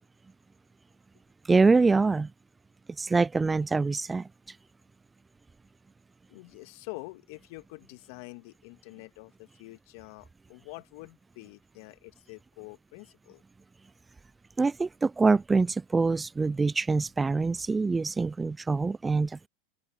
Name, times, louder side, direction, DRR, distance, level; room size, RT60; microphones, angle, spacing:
voice 1, 1.5-2.3 3.0-4.3 14.6-19.5, right 4 dB, 15° right, 0.3 m, -25 dB
voice 2, 6.3-13.4, left 26 dB, 60° left, 1.9 m, -46 dB
open air
hypercardioid pair, 100°, 0 cm